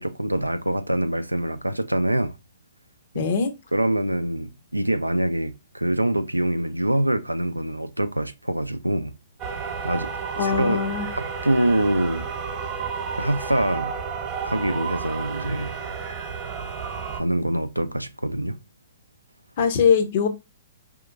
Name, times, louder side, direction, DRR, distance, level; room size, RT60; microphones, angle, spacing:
voice 1, 0.0-2.3 3.1-3.3 3.7-9.1 9.8-12.3 13.1-14.0 14.4-15.7 17.1-18.6, right 1 dB, 85° right, 0.4 m, -25 dB
voice 2, 3.1-3.5 10.4-11.1 19.6-20.3, left 6 dB, 45° left, 0.6 m, -21 dB
sound 1, 9.4-17.2, right 6 dB, 30° right, 0.9 m, -31 dB
4.7 x 2.8 x 2.4 m
figure-of-eight pair, 115°, 0 cm